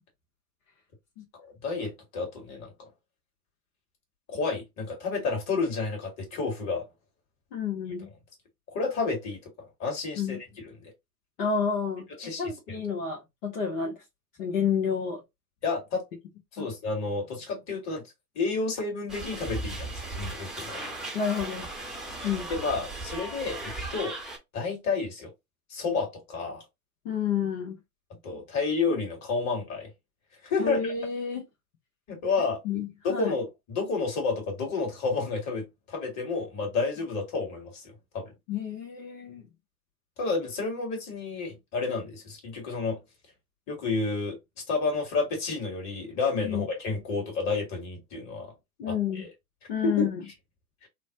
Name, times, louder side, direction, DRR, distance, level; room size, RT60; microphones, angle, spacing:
voice 1, 1.4-2.7 4.3-6.8 8.7-9.5 9.8-10.4 10.6-10.9 12.2-12.5 15.6-16.0 16.5-18.0 18.4-20.8 22.5-24.2 24.5-25.3 25.7-26.6 28.2-29.9 30.4-30.9 32.1-32.6 33.0-38.3 40.2-43.0 43.7-44.4 44.7-48.5 48.9-49.3 49.8-50.1 50.8-50.9, left 4 dB, 35° left, 1.9 m, -30 dB
voice 2, 7.5-8.1 10.2-10.4 11.4-13.9 14.4-15.2 16.6-16.7 21.1-21.7 22.2-22.5 27.0-27.8 30.6-31.4 32.6-33.3 38.5-39.4 46.4-46.6 48.8-49.3 49.7-50.2, left 7 dB, 60° left, 1.2 m, -30 dB
sound 1, 19.1-24.4, right 2 dB, ahead, 0.9 m, -37 dB
3.1 x 2.2 x 2.8 m
hypercardioid pair, 100°, 46 cm